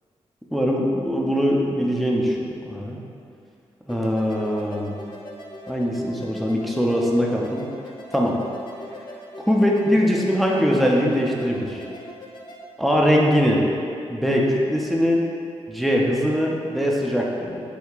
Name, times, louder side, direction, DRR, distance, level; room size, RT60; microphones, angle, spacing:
voice 1, 0.5-2.4 2.6-3.0 3.9-5.0 5.7-7.6 8.1-8.4 9.5-11.8 12.8-13.6 14.1-15.2 15.7-17.6, equal, ahead, -2 dB, 0.5 m, -21 dB
sound 1, 3.9-12.6, left 1 dB, 45° left, 0.6 m, -41 dB
8.0 x 2.8 x 2.4 m, 2.5 s
wide cardioid pair, 120°, 11 cm